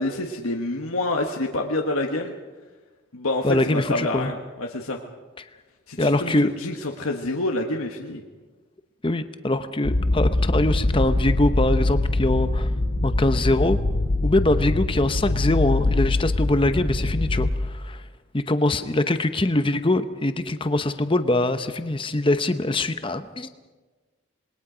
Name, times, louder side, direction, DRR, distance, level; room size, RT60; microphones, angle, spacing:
voice 1, 0.0-2.3 3.1-5.0 5.9-8.2, left 2 dB, 80° left, 2 dB, 1.3 m, -27 dB
voice 2, 3.4-4.3 5.4-5.5 6.0-6.5 9.0-12.7 13.0-13.8 14.2-18.0 18.3-23.5, left 2 dB, 25° left, 10 dB, 0.8 m, -23 dB
sound 1, 9.8-17.5, left 2 dB, 45° left, 1.0 m, -23 dB
27.0 x 20.5 x 5.0 m, 1.3 s
head